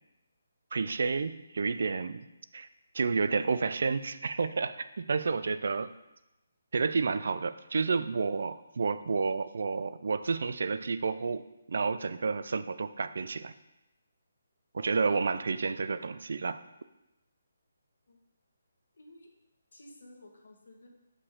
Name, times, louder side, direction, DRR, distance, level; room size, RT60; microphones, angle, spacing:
voice 1, 0.7-2.3 2.5-2.7 2.9-5.9 6.7-13.5 14.7-16.6, right 4 dB, 60° right, 13 dB, 0.4 m, -30 dB
voice 2, 19.0-19.3 19.7-20.9, left 1 dB, 80° left, 1 dB, 1.5 m, -53 dB
6.4 x 4.9 x 3.7 m, 0.94 s
hypercardioid pair, 170°, 0 cm